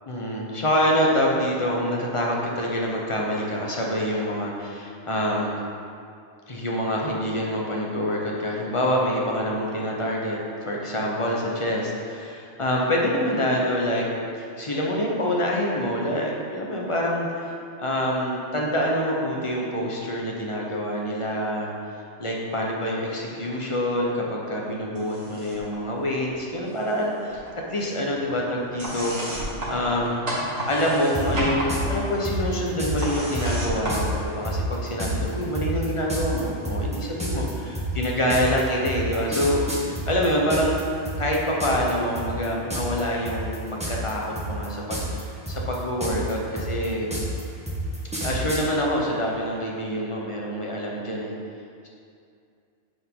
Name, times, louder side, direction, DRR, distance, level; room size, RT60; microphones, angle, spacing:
voice 1, 0.1-5.6 6.5-14.1 14.4-17.5 17.8-21.7 22.2-27.4 27.7-40.9 41.2-43.6 43.9-47.1 48.2-51.3, equal, 30° left, -2 dB, 1.1 m, -26 dB
sound 1, 24.9-25.7 26.0-27.0 27.3-34.8, right 1 dB, 75° right, 2.1 m, -32 dB
sound 2, 31.1-31.3 31.7-31.8 32.2-32.9 33.3-33.5 33.9-34.0 34.4-40.8 41.1-41.9 42.2-42.5 42.7-43.0 43.3-44.1 44.4-45.2 45.5-48.6, equal, 5° right, 1.2 m, -30 dB
9.7 x 5.4 x 3.9 m, 2.4 s
omnidirectional pair, 1.2 m